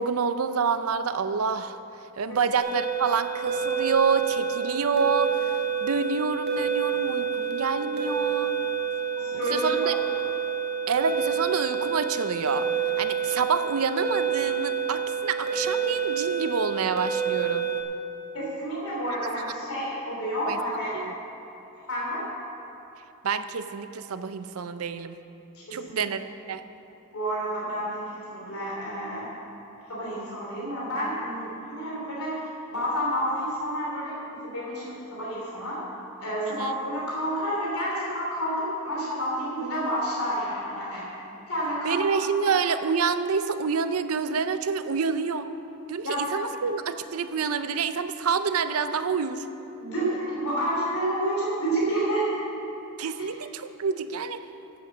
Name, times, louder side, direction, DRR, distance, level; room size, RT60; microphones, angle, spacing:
voice 1, 0.0-1.8 2.2-8.6 9.3-9.9 10.9-12.7 13.0-17.7 20.5-20.6 20.9-21.1 23.2-25.2 25.7-26.2 26.5-26.6 36.6-36.7 41.8-45.5 45.9-49.5 53.0-54.4, right 5 dB, 75° right, 11 dB, 0.6 m, -27 dB
sound 1, 2.6-17.8, right 7 dB, 50° right, 1.8 m, -28 dB
voice 2, 9.2-9.9 18.3-21.0 21.9-22.2 25.5-26.1 27.1-29.3 29.9-35.8 36.2-41.0 41.5-42.5 46.0-46.2 49.8-52.4, right 1 dB, 80° left, -6 dB, 3.0 m, -30 dB
11.0 x 8.3 x 7.2 m, 2.9 s
head